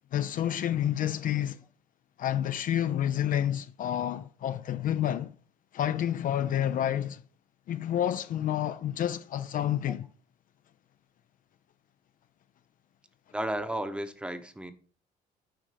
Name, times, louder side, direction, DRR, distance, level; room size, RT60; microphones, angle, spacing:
voice 1, 0.1-1.6 2.2-5.3 5.7-7.2 7.7-10.1, left 10 dB, 55° left, 0.5 m, -29 dB
voice 2, 13.3-14.7, right 1 dB, 5° right, 0.9 m, -33 dB
9.2 x 4.9 x 4.9 m
cardioid pair, 110°, 17 cm